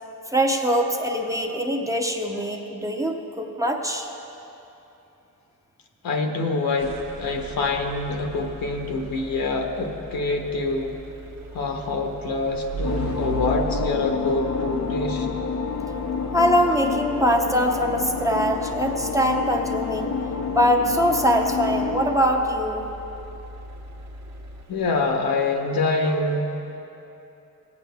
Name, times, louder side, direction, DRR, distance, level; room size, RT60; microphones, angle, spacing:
voice 1, 0.3-4.1 16.3-20.1 20.5-22.9, equal, 10° right, 1 dB, 0.7 m, -22 dB
voice 2, 6.0-11.0 11.5-15.3 24.7-26.8, left 3 dB, 75° left, 3 dB, 1.2 m, -25 dB
sound 1, 6.8-25.1, right 2 dB, 50° right, 1.1 m, -38 dB
sound 2, 12.8-22.2, left 5 dB, 50° left, 0.6 m, -29 dB
16.5 x 8.6 x 3.5 m, 3.0 s
cardioid pair, 95°, 35 cm